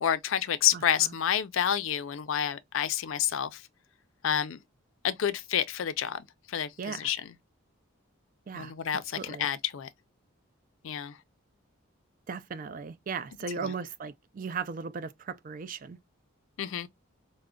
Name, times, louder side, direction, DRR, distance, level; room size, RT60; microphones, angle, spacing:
voice 1, 0.0-3.6 4.2-4.6 5.0-7.2 8.5-9.9 10.8-11.1 16.6-16.9, left 9 dB, 70° left, 0.4 m, -29 dB
voice 2, 0.7-1.1 6.8-7.1 8.5-8.7 9.2-9.5 12.3-16.0, right 5 dB, 40° right, 0.3 m, -37 dB
4.8 x 2.1 x 2.2 m
head